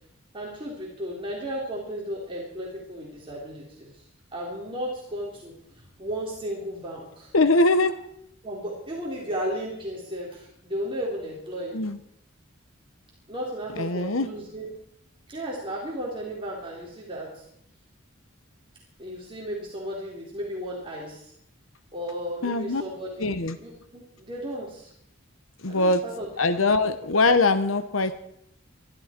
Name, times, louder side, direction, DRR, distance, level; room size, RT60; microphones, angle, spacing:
voice 1, 0.3-4.0 4.3-7.3 8.4-11.8 13.3-14.7 15.3-17.4 19.0-21.3 21.9-23.3 23.6-24.9 25.6-26.3 26.6-26.7, equal, 25° right, -3 dB, 3.6 m, -34 dB
voice 2, 7.3-7.9 11.7-12.0 13.7-14.3 22.4-22.8 23.2-23.6 25.6-26.0 26.4-28.1, left 2 dB, 75° left, 10 dB, 1.1 m, -22 dB
22.5 x 13.5 x 4.5 m, 0.71 s
head